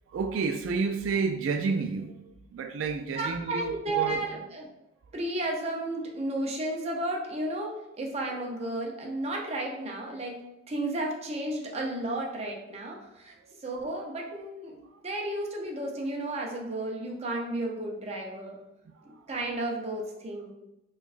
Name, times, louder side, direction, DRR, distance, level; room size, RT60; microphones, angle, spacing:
voice 1, 0.1-4.2 13.4-13.5 19.0-19.1, right 4 dB, 85° right, 6 dB, 0.3 m, -30 dB
voice 2, 3.2-4.7 5.1-13.3 13.6-18.6 19.3-20.5, right 2 dB, 35° right, 0 dB, 0.6 m, -33 dB
4.4 x 2.3 x 2.4 m, 0.89 s
head